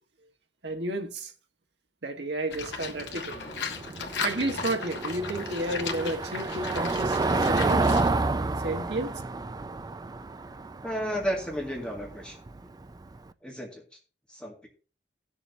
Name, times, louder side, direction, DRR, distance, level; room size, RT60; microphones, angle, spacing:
voice 1, 0.6-1.3 2.0-3.4 4.2-8.0 8.6-9.2, right 1 dB, 75° right, 1.5 m, -32 dB
Livestock farm animals working animals, 2.5-8.1, left 5 dB, 85° left, 1.4 m, -36 dB
Car passing by / Engine, 2.5-13.2, right 3 dB, 25° right, 0.4 m, -30 dB
voice 2, 10.8-12.4 13.4-13.8 14.3-14.7, equal, 5° left, 2.0 m, -32 dB
17.5 x 7.1 x 2.8 m
head